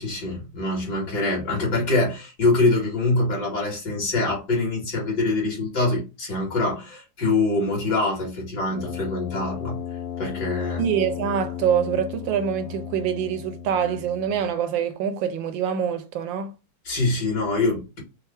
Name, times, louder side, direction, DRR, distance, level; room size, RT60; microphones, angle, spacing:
voice 1, 0.0-9.8 10.2-10.8 16.8-18.0, left 2 dB, 55° left, 2.5 m, -24 dB
Brass instrument, 8.7-14.6, left 9 dB, 75° left, 1.2 m, -35 dB
voice 2, 10.8-16.5, right 8 dB, 75° right, 1.3 m, -25 dB
5.3 x 2.1 x 3.3 m
omnidirectional pair, 2.1 m